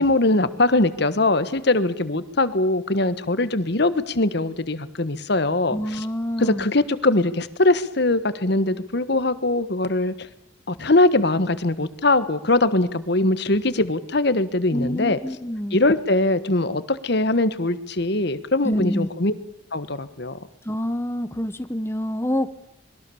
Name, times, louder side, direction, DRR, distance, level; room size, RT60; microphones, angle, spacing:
voice 1, 0.0-6.1 6.4-10.3 10.7-15.2 15.7-19.3 19.7-20.4, left 2 dB, 55° left, 13 dB, 1.3 m, -21 dB
voice 2, 5.7-6.6 14.7-15.8 18.6-19.1 20.7-22.5, equal, 10° left, 10 dB, 1.0 m, -27 dB
26.0 x 22.0 x 7.1 m, 0.83 s
head